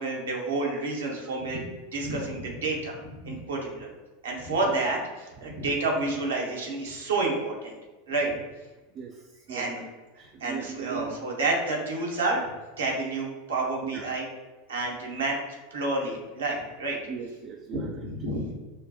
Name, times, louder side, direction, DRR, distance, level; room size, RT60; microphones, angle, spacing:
voice 1, 0.0-1.7 1.9-3.0 3.2-3.9 4.2-7.7 8.1-8.3 9.5-9.8 10.4-12.4 12.8-14.2 14.7-15.3 15.7-17.0 17.7-18.5, right 2 dB, 75° right, -1 dB, 1.1 m, -29 dB
voice 2, 8.9-9.9 10.2-11.0 13.8-14.1 17.1-18.0, right 6 dB, 40° right, 2 dB, 0.4 m, -39 dB
6.2 x 2.2 x 2.9 m, 1.2 s
figure-of-eight pair, 80°, 0 cm